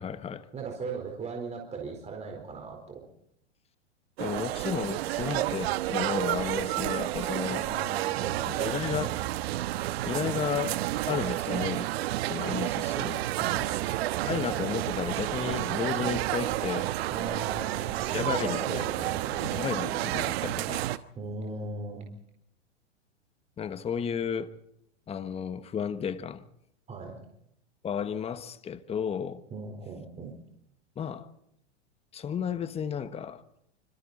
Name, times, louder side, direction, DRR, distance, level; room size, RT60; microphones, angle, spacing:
voice 1, 0.0-0.5 4.2-7.6 8.5-9.2 10.0-10.8 11.1-11.9 12.2-13.3 14.2-16.9 18.1-18.8 19.4-20.9 23.6-24.5 25.1-26.4 27.8-29.4 31.0-31.3 32.1-33.4, left 7 dB, 15° left, 1.2 m, -33 dB
voice 2, 0.5-3.1 7.5-8.7 13.3-13.7 17.1-19.4 21.2-22.1 26.9-27.2 29.5-30.3, right 4 dB, 20° right, 4.3 m, -38 dB
sound 1, 4.2-21.0, right 15 dB, 55° right, 1.2 m, -30 dB
26.0 x 26.0 x 4.2 m
hypercardioid pair, 120°, 36 cm